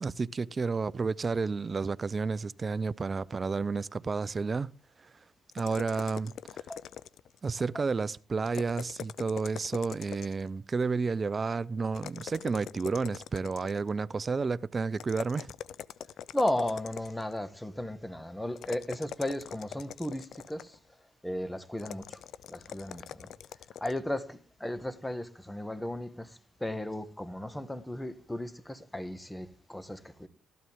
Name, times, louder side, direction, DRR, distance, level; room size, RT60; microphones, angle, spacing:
voice 1, 0.0-4.7 5.0-5.1 5.5-6.3 7.4-15.5, right 4 dB, 35° right, 0.6 m, -31 dB
sound 1, 5.5-7.4 8.4-10.5 11.9-13.9 15.0-17.3 18.6-20.8 21.8-24.0, left 9 dB, 70° left, 0.5 m, -43 dB
voice 2, 16.3-20.8 21.2-22.2 22.5-23.3 23.8-30.3, left 1 dB, 10° left, 1.5 m, -35 dB
14.0 x 12.0 x 3.6 m
cardioid pair, 75°, 0 cm